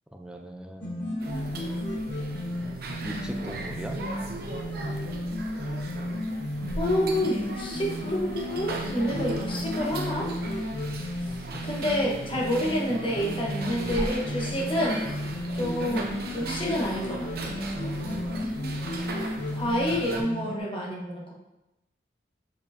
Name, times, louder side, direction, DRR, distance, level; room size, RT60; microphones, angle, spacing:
voice 1, 0.1-1.1 3.0-4.0 15.6-15.8 18.0-18.6, equal, 5° right, 2 dB, 0.6 m, -39 dB
sound 1, 0.8-20.6, equal, 75° left, 1.4 m, -33 dB
sound 2, 1.2-20.2, right 2 dB, 60° right, 0.7 m, -38 dB
voice 2, 6.8-10.3 11.6-15.0 15.5-17.5 19.5-21.3, equal, 30° left, -3 dB, 1.2 m, -28 dB
7.5 x 4.7 x 2.8 m, 0.94 s
head